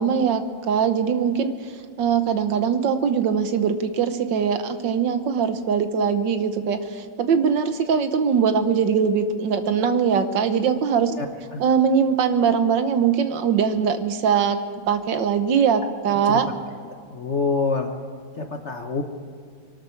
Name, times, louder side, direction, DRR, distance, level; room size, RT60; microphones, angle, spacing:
voice 1, 0.0-1.5 2.0-11.1 11.6-14.6 14.9-16.5, right 7 dB, 70° right, 9 dB, 1.6 m, -21 dB
voice 2, 17.1-17.9 18.4-19.0, left 4 dB, 45° left, 4 dB, 1.2 m, -26 dB
23.0 x 12.5 x 4.5 m, 2.2 s
omnidirectional pair, 2.1 m